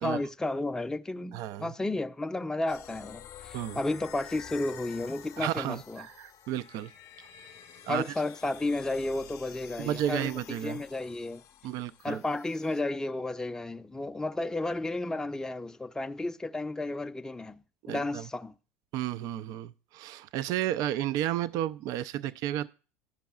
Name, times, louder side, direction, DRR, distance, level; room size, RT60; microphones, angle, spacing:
voice 1, 0.0-6.1 7.9-11.4 12.0-17.6 17.9-18.5, left 2 dB, 10° left, 0.5 m, -33 dB
voice 2, 1.3-1.7 3.5-3.8 5.4-6.9 7.8-8.0 9.8-10.8 11.6-12.2 17.9-18.2 18.9-22.7, right 12 dB, 55° right, 0.3 m, -32 dB
sound 1, 2.7-12.8, left 10 dB, 50° left, 0.6 m, -49 dB
13.5 x 5.3 x 2.3 m
hypercardioid pair, 85°, 7 cm